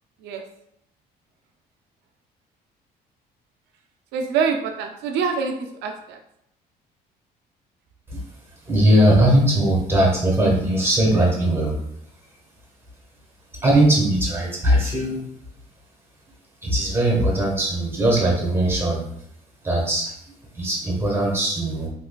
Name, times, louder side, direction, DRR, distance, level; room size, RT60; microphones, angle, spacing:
voice 1, 4.1-6.2, right 6 dB, 85° right, 4 dB, 0.4 m, -25 dB
voice 2, 8.7-11.8 13.6-15.3 16.6-19.0 19.6-20.1 20.5-21.9, right 1 dB, 15° right, -2 dB, 1.1 m, -19 dB
3.3 x 2.9 x 2.2 m, 0.73 s
cardioid pair, 110°, 17 cm